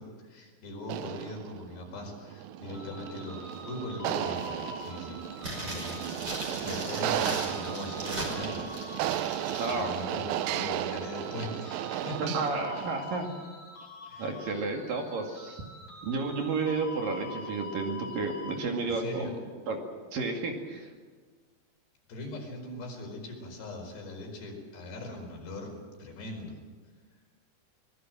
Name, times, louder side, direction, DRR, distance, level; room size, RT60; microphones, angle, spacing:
voice 1, 0.0-5.2 5.5-6.1 6.6-8.7 9.7-12.3 14.1-14.3 18.8-19.3 22.1-25.7 26.0-26.6, left 2 dB, 75° left, 2 dB, 6.8 m, -40 dB
sound 1, 0.8-13.2, right 12 dB, 75° right, 2.1 m, -35 dB
sound 2, 2.7-18.6, left 2 dB, 50° left, 5.5 m, -46 dB
sound 3, 5.4-9.8 10.1-10.2, right 1 dB, 25° right, 5.8 m, -38 dB
voice 2, 9.6-9.9 12.2-13.3 14.2-15.6 16.0-19.3 19.7-19.8 20.1-20.9, right 3 dB, 55° right, 2 dB, 3.7 m, -31 dB
24.0 x 21.0 x 7.7 m, 1.4 s
omnidirectional pair, 5.0 m